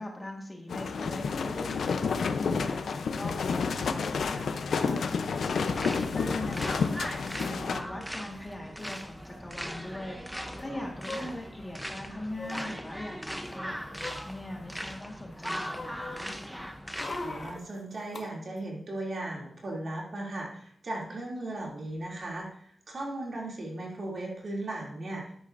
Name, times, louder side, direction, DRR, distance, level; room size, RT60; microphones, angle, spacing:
voice 1, 0.0-5.0 5.4-6.9 7.4-16.3, left 1 dB, 15° left, 0 dB, 1.6 m, -41 dB
sound 1, 0.7-7.8, left 5 dB, 85° left, 0.6 m, -30 dB
sound 2, 4.9-5.0 6.0-6.4 6.7-6.8 7.0-7.6 8.5-8.6 8.8-9.0 10.6-11.7 12.3-12.7 13.3-14.9 15.3-18.2 18.6-18.7, left 2 dB, 40° left, 1.7 m, -43 dB
sound 3, 5.6-17.6, equal, ahead, 0.7 m, -39 dB
voice 2, 17.2-25.3, right 2 dB, 50° right, -2 dB, 2.8 m, -37 dB
13.5 x 10.0 x 2.6 m, 0.64 s
wide cardioid pair, 150°, 0 cm